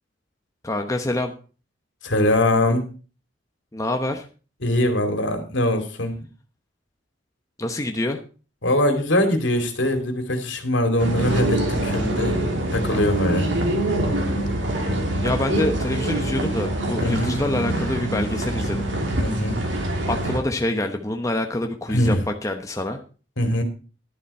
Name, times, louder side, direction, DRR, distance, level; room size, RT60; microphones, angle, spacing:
voice 1, 0.6-1.3 3.7-4.3 7.6-8.2 15.2-18.8 20.1-23.0, left 1 dB, 15° left, 4 dB, 0.9 m, -26 dB
voice 2, 2.0-2.9 4.6-6.2 8.6-12.3 12.7-13.5 17.0-17.3 19.2-19.6 21.9-22.2 23.4-23.6, left 1 dB, 75° left, 6 dB, 2.6 m, -22 dB
sound 1, 11.0-20.4, right 1 dB, 75° right, 3.0 m, -25 dB
11.5 x 10.5 x 4.3 m, 0.36 s
head